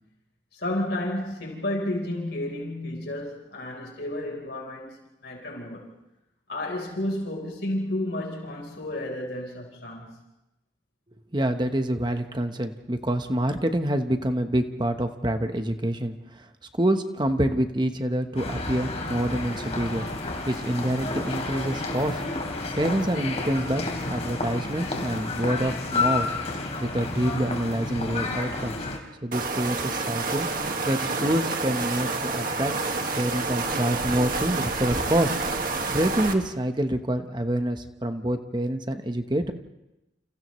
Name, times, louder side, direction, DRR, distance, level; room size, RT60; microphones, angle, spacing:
voice 1, 0.5-5.9 6.5-10.2, left 1 dB, 65° left, 4.1 m, -31 dB
voice 2, 11.3-16.5 16.8-20.1 20.5-22.2 22.8-26.3 26.8-28.8 29.2-30.5 30.9-32.7 33.2-35.4 35.9-39.5, right 1 dB, 25° right, 1.1 m, -26 dB
sound 1, 18.4-29.0, left 3 dB, 35° left, 3.4 m, -31 dB
sound 2, 29.3-36.3, right 3 dB, 50° right, 1.9 m, -28 dB
30.0 x 29.0 x 3.2 m
head